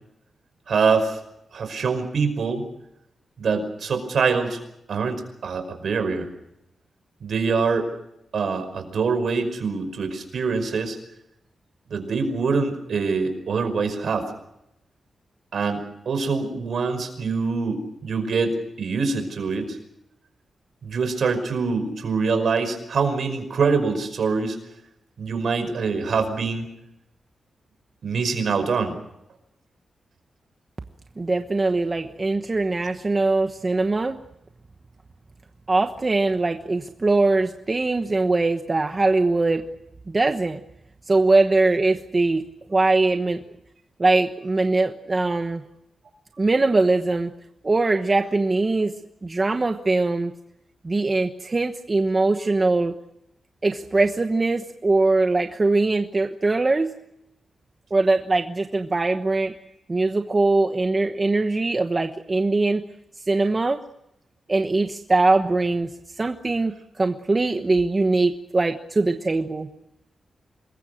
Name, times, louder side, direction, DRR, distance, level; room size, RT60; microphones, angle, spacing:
voice 1, 0.7-1.2 1.5-2.7 3.4-4.6 4.9-6.3 7.2-7.9 8.3-11.0 11.9-14.3 15.5-19.8 20.8-24.6 25.2-26.7 28.0-29.0, right 4 dB, 65° right, 8 dB, 5.4 m, -24 dB
voice 2, 31.2-34.2 35.7-39.6 40.1-40.6 41.1-43.4 44.0-45.6 46.4-47.3 47.6-48.9 49.2-50.3 50.8-52.9 53.6-56.9 57.9-59.5 59.9-62.8 63.3-63.8 64.5-65.9 66.2-69.7, right 3 dB, 25° right, 6 dB, 1.1 m, -21 dB
26.5 x 21.5 x 6.5 m, 0.84 s
wide cardioid pair, 140°, 0 cm